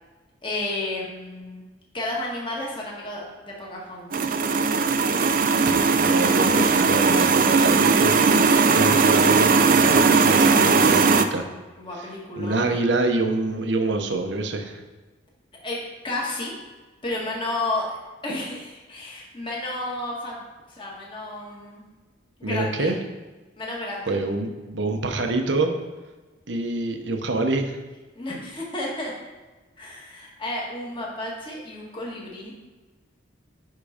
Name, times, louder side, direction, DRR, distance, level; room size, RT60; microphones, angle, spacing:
voice 1, 0.4-1.7 1.9-4.3 11.8-12.9 15.6-16.5 17.0-18.0 18.2-20.4 20.7-21.8 22.4-22.9 23.6-24.1 28.1-29.1 29.8-32.5, left 2 dB, 25° left, -3 dB, 1.6 m, -32 dB
sound 1, 4.1-11.2, right 4 dB, 45° right, 0.4 m, -18 dB
voice 2, 6.0-11.5 12.0-12.1 12.4-14.8 22.4-23.0 24.1-25.7 26.5-27.8, right 2 dB, 65° right, 5 dB, 0.9 m, -26 dB
10.5 x 3.8 x 5.1 m, 1.2 s
head